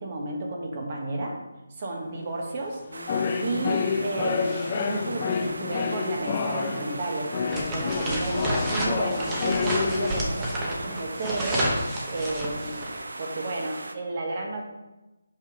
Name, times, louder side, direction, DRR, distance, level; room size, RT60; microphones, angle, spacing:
voice 1, 0.0-1.4 1.8-2.8 3.4-7.3 7.7-11.7 12.1-12.9 13.2-14.6, right 2 dB, 35° right, 0 dB, 1.4 m, -32 dB
sound 1, 2.0-2.3 2.8-10.2, left 5 dB, 25° left, 0.5 m, -29 dB
sound 2, 2.9-14.0, right 2 dB, 75° right, 0.8 m, -38 dB
sound 3, 7.5-13.0, right 1 dB, 15° right, 1.0 m, -30 dB
6.3 x 5.1 x 5.1 m, 1.0 s
figure-of-eight pair, 170°, 0 cm